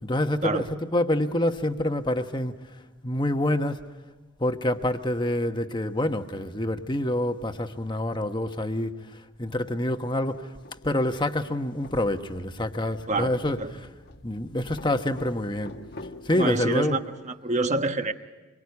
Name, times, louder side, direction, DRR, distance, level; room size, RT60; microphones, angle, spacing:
voice 1, 0.0-2.5 3.0-3.8 4.4-9.0 9.4-10.5 10.8-13.9 14.2-15.7 16.2-17.0, left 1 dB, 20° left, 7 dB, 1.1 m, -27 dB
sound 1, 9.9-16.5, left 2 dB, 45° left, 1.2 m, -47 dB
voice 2, 16.4-18.1, right 2 dB, 30° right, 7 dB, 1.1 m, -27 dB
26.0 x 23.5 x 9.6 m, 1.2 s
head